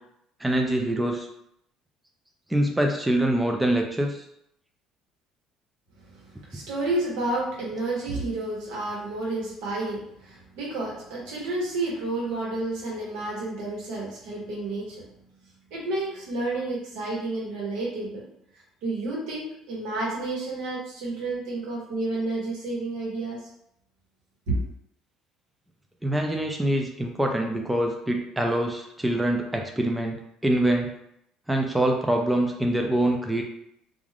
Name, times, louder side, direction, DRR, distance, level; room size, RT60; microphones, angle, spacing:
voice 1, 0.4-1.3 2.5-4.3 26.0-30.9 31.5-33.4, right 1 dB, 5° right, 2 dB, 0.3 m, -24 dB
voice 2, 6.0-15.1 15.7-18.2 18.8-23.4 24.5-24.6, right 2 dB, 80° right, -4 dB, 1.2 m, -30 dB
2.4 x 2.4 x 3.3 m, 0.76 s
cardioid pair, 140°, 0 cm